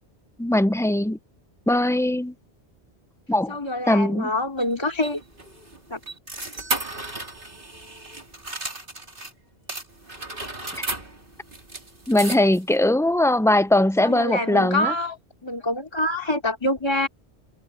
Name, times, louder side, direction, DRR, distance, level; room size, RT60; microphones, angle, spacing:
voice 1, 0.4-1.2 1.7-2.3 3.3-3.6 3.9-4.3 10.7-10.8 12.1-14.9, left 1 dB, 5° left, 0.3 m, -20 dB
voice 2, 3.5-5.2 5.9-6.0 14.0-17.1, left 1 dB, 25° left, 3.0 m, -26 dB
sound 1, 4.6-9.3 9.7-12.8, right 2 dB, 55° right, 3.7 m, -34 dB
omnidirectional pair, 1.1 m